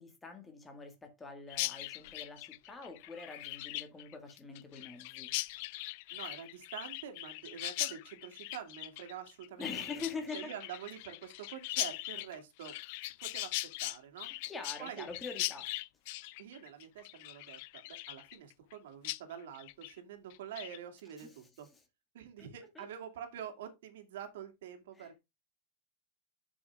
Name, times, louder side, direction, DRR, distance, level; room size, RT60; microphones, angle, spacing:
voice 1, 0.0-5.3 9.6-10.5 14.3-15.7 21.2-21.3 22.4-22.5 22.8-22.9 25.0-25.1, left 4 dB, 10° left, 1.8 m, -45 dB
Chirp tweet, 1.5-18.8 19.0-19.2 19.5-19.9 20.3-20.8, left 20 dB, 45° left, 0.4 m, -40 dB
voice 2, 6.1-10.0 10.3-12.7 13.0-14.3 14.8-15.1 16.4-17.6 17.9-21.7 22.1-25.2, right 9 dB, 75° right, 2.4 m, -46 dB
9.5 x 6.2 x 3.5 m
supercardioid pair, 180°, 0 cm